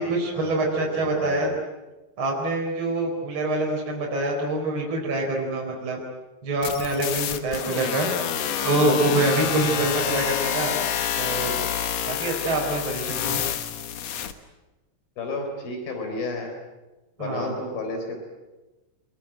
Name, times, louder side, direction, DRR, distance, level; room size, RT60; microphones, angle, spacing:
voice 1, 0.0-1.5 2.2-6.0 6.4-8.1 8.6-10.8 11.2-11.7 12.1-13.4 17.2-17.5, right 2 dB, 35° right, -1 dB, 4.8 m, -25 dB
voice 2, 0.9-1.6 15.2-16.5 17.2-18.2, left 2 dB, 85° left, 4 dB, 5.7 m, -32 dB
sound 1, 6.6-14.3, left 9 dB, 60° left, 2.1 m, -28 dB
25.5 x 22.5 x 8.9 m, 1.1 s
omnidirectional pair, 4.1 m